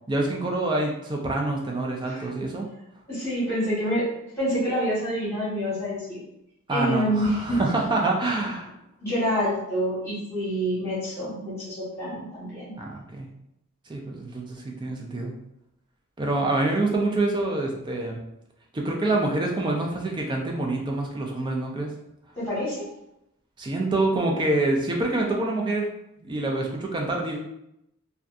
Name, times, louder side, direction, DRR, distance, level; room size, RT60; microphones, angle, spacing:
voice 1, 0.1-2.7 6.7-8.7 12.8-13.3 13.9-15.3 16.2-18.2 18.7-21.9 23.6-25.9 26.2-27.4, right 2 dB, 20° right, 0 dB, 0.3 m, -26 dB
voice 2, 3.1-4.1 4.4-6.2 6.7-7.6 9.0-12.7 22.4-22.7, equal, 10° left, -10 dB, 1.3 m, -27 dB
2.6 x 2.2 x 2.4 m, 0.83 s
head